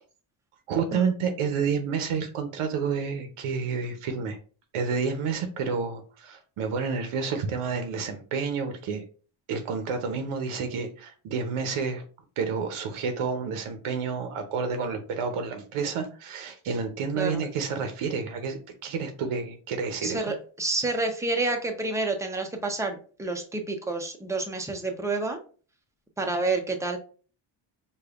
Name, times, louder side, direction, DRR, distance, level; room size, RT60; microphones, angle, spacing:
voice 1, 0.7-4.4 4.7-9.0 9.5-12.0 12.4-20.3, right 5 dB, 80° right, 6 dB, 0.7 m, -29 dB
voice 2, 20.0-25.4 26.2-27.0, right 3 dB, 5° right, 3 dB, 0.5 m, -29 dB
5.0 x 2.3 x 2.3 m, 0.39 s
cardioid pair, 120°, 50 cm